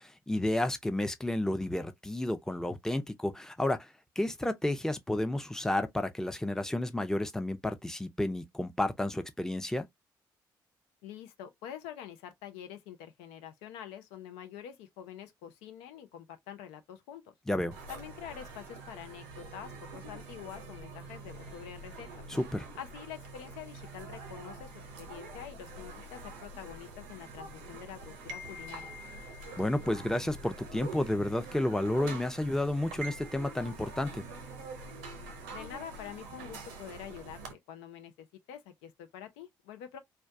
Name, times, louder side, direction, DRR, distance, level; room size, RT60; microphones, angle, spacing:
voice 1, 0.0-3.9 4.2-9.9 17.5-17.7 22.3-22.7 29.6-34.2, left 1 dB, 5° left, 0.5 m, -31 dB
voice 2, 11.0-17.3 17.9-22.1 22.7-24.7 25.0-28.9 35.5-40.0, left 9 dB, 85° left, 0.5 m, -46 dB
sound 1, 17.7-37.5, right 3 dB, 90° right, 0.6 m, -45 dB
2.2 x 2.2 x 2.6 m
hypercardioid pair, 50°, 10 cm